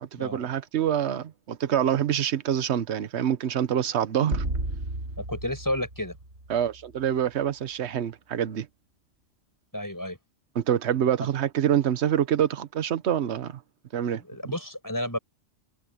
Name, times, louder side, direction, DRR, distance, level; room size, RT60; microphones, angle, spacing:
voice 1, 0.0-4.4 6.5-8.7 10.5-13.6 13.9-14.2, right 9 dB, 65° right, 1.2 m, -26 dB
sound 1, 4.3-6.9, right 1 dB, 90° right, 4.2 m, -33 dB
voice 2, 5.2-6.2 9.7-10.2 14.2-15.2, left 1 dB, 15° left, 7.6 m, -31 dB
omnidirectional pair, 1.2 m